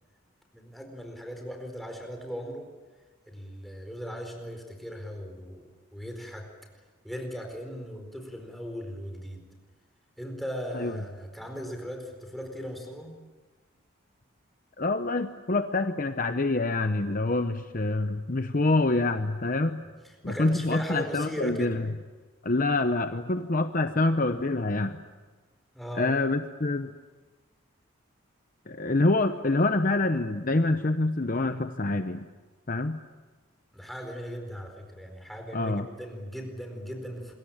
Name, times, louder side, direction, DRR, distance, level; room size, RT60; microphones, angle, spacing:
voice 1, 0.5-2.7 3.3-6.5 7.0-9.4 10.2-13.1 20.0-21.7 25.7-26.1 33.7-37.3, equal, ahead, 3 dB, 4.5 m, -38 dB
voice 2, 14.8-19.8 20.2-21.9 22.4-25.0 26.0-26.9 28.7-32.3 32.7-33.0 35.5-35.9, left 2 dB, 40° left, 8 dB, 0.8 m, -26 dB
26.5 x 22.5 x 8.8 m, 1.3 s
head